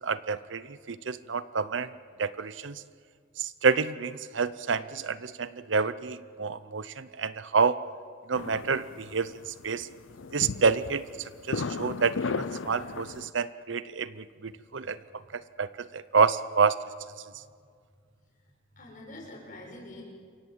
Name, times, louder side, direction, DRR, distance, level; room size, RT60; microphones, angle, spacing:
voice 1, 0.0-1.9 2.2-2.8 3.4-7.8 8.3-9.3 9.6-9.9 10.3-11.0 11.5-15.0 15.3-16.8, right 5 dB, 70° right, 16 dB, 0.7 m, -28 dB
sound 1, 8.3-13.3, left 4 dB, 75° left, 0.6 m, -36 dB
voice 2, 18.7-20.0, left 1 dB, 40° left, -2 dB, 7.1 m, -46 dB
28.0 x 23.5 x 7.9 m, 2.1 s
head